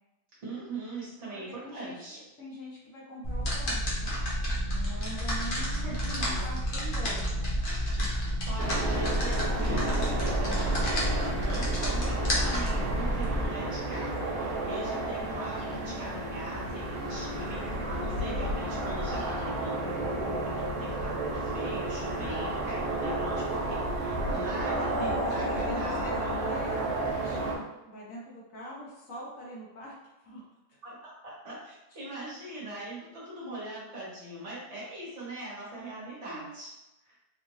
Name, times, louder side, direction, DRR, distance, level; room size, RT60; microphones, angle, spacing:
voice 1, 0.4-2.2 5.8-6.4 8.4-26.4 30.8-36.7 37.1-37.2, right 1 dB, 50° right, -7 dB, 1.4 m, -40 dB
voice 2, 1.3-7.6 24.7-30.0 30.2-30.4 36.2-36.5, equal, 60° left, -5 dB, 1.2 m, -43 dB
sound 1, 3.2-13.5, equal, 45° left, 0.8 m, -29 dB
sound 2, 8.6-27.5, right 2 dB, 70° right, 1.4 m, -32 dB
3.7 x 2.5 x 3.0 m, 0.97 s
omnidirectional pair, 1.7 m